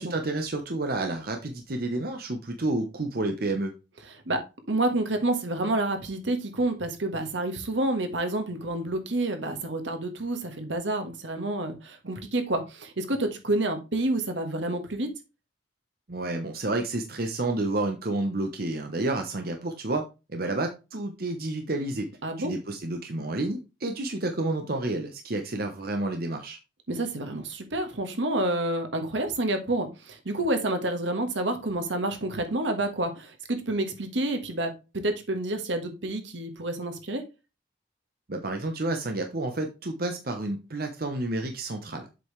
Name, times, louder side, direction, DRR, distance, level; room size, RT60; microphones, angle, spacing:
voice 1, 0.0-3.7 16.1-20.0 20.3-22.1 22.4-26.6 38.3-42.1, right 2 dB, 55° right, 4 dB, 1.0 m, -30 dB
voice 2, 4.7-15.1 22.2-22.5 26.9-37.2, right 2 dB, 80° right, 6 dB, 1.5 m, -29 dB
7.6 x 5.4 x 3.2 m, 0.28 s
head